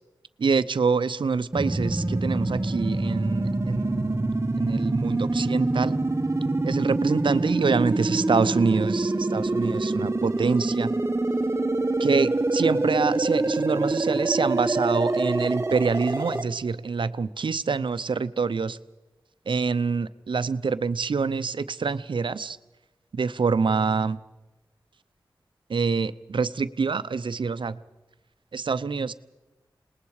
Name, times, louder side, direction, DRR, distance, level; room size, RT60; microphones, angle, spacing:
voice 1, 0.4-4.3 4.6-6.0 6.6-10.9 12.0-18.8 19.5-22.6 23.1-24.2 25.7-27.8 28.5-29.1, right 5 dB, 75° right, 13 dB, 0.7 m, -26 dB
sound 1, 1.5-16.4, right 2 dB, 30° right, 1.1 m, -25 dB
27.5 x 20.0 x 4.9 m, 1.1 s
cardioid pair, 40°, 8 cm